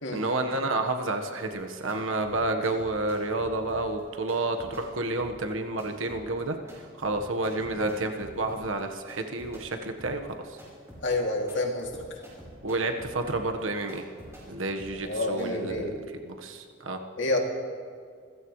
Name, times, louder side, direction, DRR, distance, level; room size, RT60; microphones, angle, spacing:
voice 1, 0.1-10.6 12.6-14.1 14.5-15.9 16.2-17.0, right 2 dB, 80° right, 5 dB, 1.4 m, -30 dB
sound 1, 1.6-9.7 10.0-15.8, equal, 15° right, 5.5 m, -48 dB
voice 2, 11.0-11.9 15.0-15.9 17.2-17.4, left 2 dB, 70° left, 0 dB, 2.7 m, -28 dB
27.0 x 16.0 x 3.3 m, 2.1 s
head